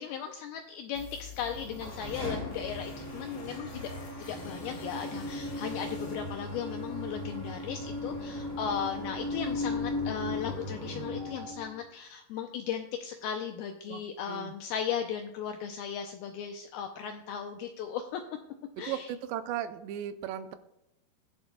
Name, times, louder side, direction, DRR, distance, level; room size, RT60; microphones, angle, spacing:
voice 1, 0.0-3.9 4.3-18.2 18.8-19.1, left 8 dB, 90° left, 5 dB, 2.1 m, -37 dB
sound 1, 1.0-7.0, left 5 dB, 65° left, 1.6 m, -48 dB
sound 2, 1.4-11.7, left 2 dB, 10° left, 1.7 m, -37 dB
voice 2, 18.8-20.6, right 10 dB, 85° right, 10 dB, 2.8 m, -36 dB
21.0 x 7.0 x 2.2 m, 0.83 s
omnidirectional pair, 5.0 m